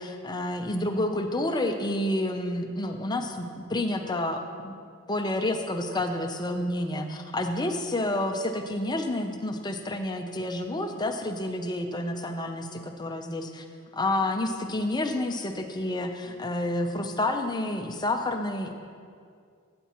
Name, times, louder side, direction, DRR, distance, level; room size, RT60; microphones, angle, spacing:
voice 1, 0.0-4.7 5.1-13.7 13.9-18.7, left 1 dB, 20° left, 5 dB, 0.6 m, -29 dB
14.5 x 8.3 x 3.0 m, 2.2 s
head